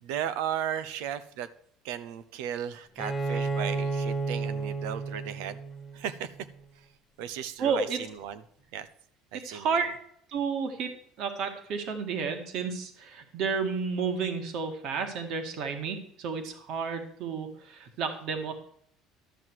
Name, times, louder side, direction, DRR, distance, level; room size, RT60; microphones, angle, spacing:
voice 1, 0.0-1.5 1.8-5.6 5.9-6.3 7.2-8.4 8.7-8.9 9.3-9.9, right 9 dB, 80° right, 15 dB, 0.9 m, -35 dB
Bowed string instrument, 3.0-6.6, right 4 dB, 5° left, 1.6 m, -32 dB
voice 2, 7.6-8.0 9.4-9.9 10.3-10.9 11.2-18.5, right 5 dB, 45° right, 6 dB, 1.8 m, -31 dB
12.0 x 7.7 x 4.7 m, 0.65 s
cardioid pair, 175°, 0 cm